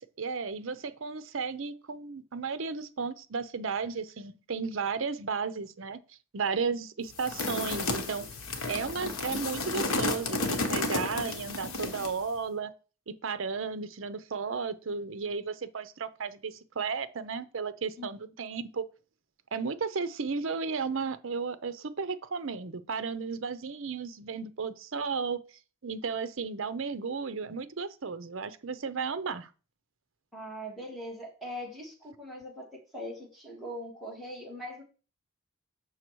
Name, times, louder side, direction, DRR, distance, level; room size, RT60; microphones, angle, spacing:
voice 1, 0.0-6.0 6.3-8.2 8.7-12.7 13.1-18.8 19.5-25.4 25.8-29.5, right 5 dB, 60° right, 0.6 m, -34 dB
sound 1, 7.2-12.2, left 2 dB, 75° left, 1.2 m, -32 dB
voice 2, 30.3-34.8, equal, ahead, 2.7 m, -41 dB
6.5 x 6.1 x 4.6 m
head